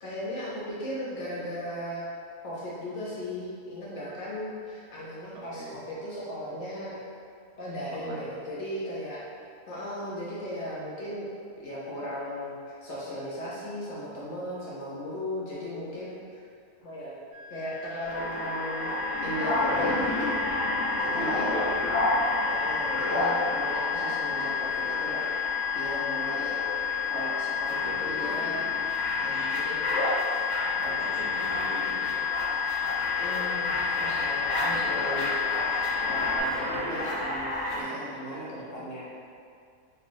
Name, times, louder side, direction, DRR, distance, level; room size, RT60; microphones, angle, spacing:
voice 1, 0.0-2.0 2.4-7.0 7.6-9.2 9.7-11.3 11.6-16.4 16.8-17.1 17.5-18.9 19.2-20.4 21.0-21.5 22.5-25.2 25.7-26.6 27.1-28.7 29.2-29.8 30.6-30.9 33.2-35.7 36.0-39.1, equal, 60° left, -7 dB, 0.8 m, -37 dB
voice 2, 5.3-5.8 7.9-8.3 21.5-21.8 27.7-28.0 29.1-29.4 30.8-32.3 34.7-34.8 38.3-38.4, right 2 dB, 85° right, -4 dB, 1.1 m, -42 dB
sound 1, 17.3-36.4, left 10 dB, 60° right, 0.8 m, -32 dB
sound 2, 18.0-37.8, left 1 dB, 85° left, 0.4 m, -30 dB
3.1 x 2.4 x 2.5 m, 2.3 s
omnidirectional pair, 1.6 m